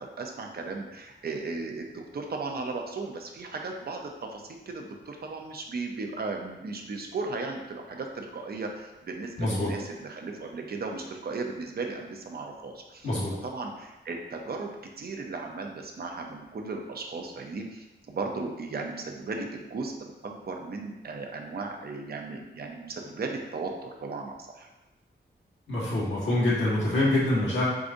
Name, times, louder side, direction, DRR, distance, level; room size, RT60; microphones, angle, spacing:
voice 1, 0.0-13.1 13.4-14.7 15.0-24.7, right 3 dB, 55° right, 2 dB, 0.6 m, -36 dB
voice 2, 9.4-9.7 13.0-13.3 25.7-27.7, left 1 dB, 85° left, -8 dB, 1.4 m, -25 dB
4.8 x 3.7 x 2.6 m, 1.1 s
wide cardioid pair, 155°, 19 cm